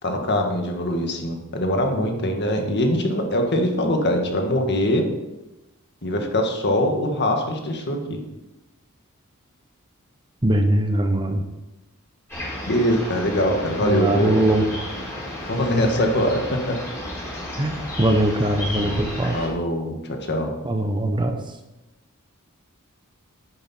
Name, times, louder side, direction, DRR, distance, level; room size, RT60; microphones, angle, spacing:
voice 1, 0.0-5.0 6.0-8.2 12.6-14.4 15.4-16.8 19.3-20.5, left 1 dB, 50° left, 3 dB, 1.7 m, -23 dB
voice 2, 10.4-11.4 13.8-14.7 17.6-19.4 20.6-21.4, right 1 dB, 20° right, 5 dB, 0.9 m, -21 dB
sound 1, 12.3-19.5, left 1 dB, 10° left, 4.5 m, -32 dB
10.5 x 9.5 x 4.4 m, 0.99 s
head